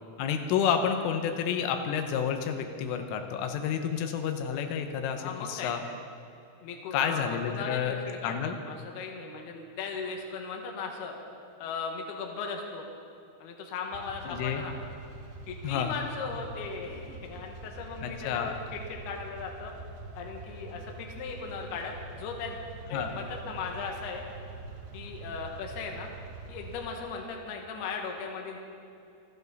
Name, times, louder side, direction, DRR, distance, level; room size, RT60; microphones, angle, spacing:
voice 1, 0.2-5.8 6.9-8.0 8.2-8.6 14.3-14.6 15.6-16.0 18.0-18.6 22.9-23.1, left 7 dB, 90° left, 6 dB, 3.5 m, -30 dB
voice 2, 5.2-5.7 6.6-11.2 11.6-12.8 13.4-14.7 15.5-19.7 20.2-22.6 22.9-24.2 24.9-26.1 26.5-28.6, left 5 dB, 65° left, 1 dB, 3.1 m, -37 dB
sound 1, 13.9-26.9, right 3 dB, 85° right, 4.3 m, -44 dB
28.0 x 10.5 x 4.1 m, 2.6 s
omnidirectional pair, 5.6 m